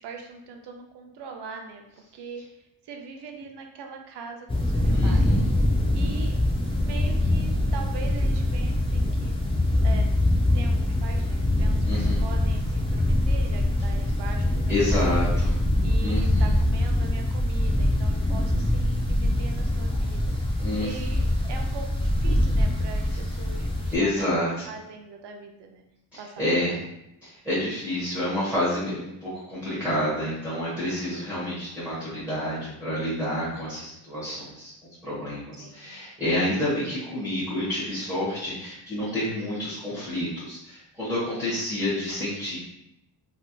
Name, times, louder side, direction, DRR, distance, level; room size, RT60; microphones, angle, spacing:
voice 1, 0.0-1.8 2.1-2.4 2.8-5.2 5.9-6.4 6.7-9.4 9.8-10.2 10.5-15.2 15.8-20.2 20.8-24.3 24.7-25.8 26.2-26.8 35.6-36.1 41.1-41.4, right 5 dB, 65° right, 3 dB, 0.6 m, -41 dB
sound 1, 4.5-23.9, left 1 dB, 15° left, 0.4 m, -24 dB
voice 2, 4.9-5.5 11.8-12.2 14.7-15.6 16.0-16.5 20.6-21.1 23.9-24.7 26.1-26.8 27.2-34.7 35.0-42.6, left 1 dB, 5° right, -12 dB, 1.3 m, -29 dB
3.3 x 2.8 x 2.3 m, 0.84 s
wide cardioid pair, 140°, 44 cm